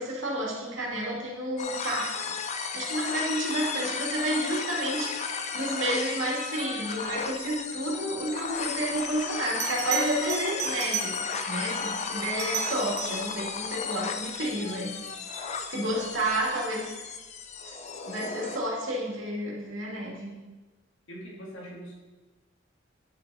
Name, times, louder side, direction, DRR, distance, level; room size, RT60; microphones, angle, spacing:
voice 1, 0.0-2.3 2.6-11.2 11.5-15.0 15.3-16.9 18.0-20.4, right 1 dB, 75° right, -3 dB, 2.5 m, -31 dB
sound 1, 1.6-18.6, left 5 dB, 35° left, 0.5 m, -34 dB
Bell, 9.0-9.1 9.6-11.5 12.2-13.3 16.0-16.2, right 9 dB, 55° right, 0.9 m, -34 dB
voice 2, 21.1-22.0, equal, 75° left, -3 dB, 2.4 m, -42 dB
10.0 x 6.1 x 4.1 m, 1.2 s
head